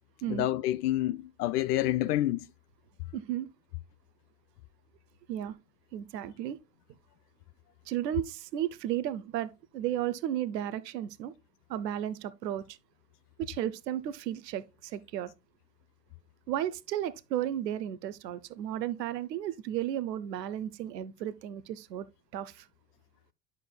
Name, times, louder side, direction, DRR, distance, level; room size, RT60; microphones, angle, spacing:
voice 1, 0.3-2.5, left 14 dB, 65° left, 0.6 m, -28 dB
voice 2, 3.1-3.5 5.3-5.6 5.9-6.6 7.9-11.3 11.7-12.8 13.4-15.3 16.5-22.1 22.3-22.7, right 11 dB, 75° right, 0.8 m, -34 dB
10.5 x 6.8 x 2.2 m
figure-of-eight pair, 70°, 50 cm